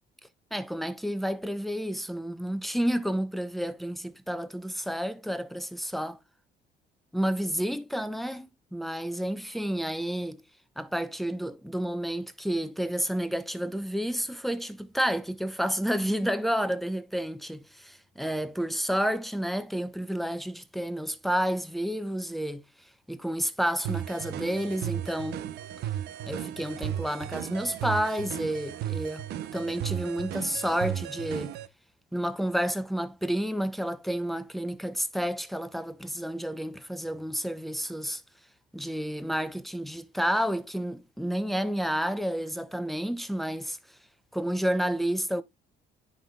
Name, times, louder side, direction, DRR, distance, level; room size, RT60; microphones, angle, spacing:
voice 1, 0.5-6.2 7.1-10.4 10.8-22.7 23.1-25.5 26.2-31.6 32.1-38.2 38.7-43.8 44.3-45.4, equal, ahead, 0.8 m, -30 dB
sound 1, 23.8-31.7, right 11 dB, 75° right, 0.7 m, -35 dB
10.0 x 5.6 x 2.3 m
cardioid pair, 110°, 17 cm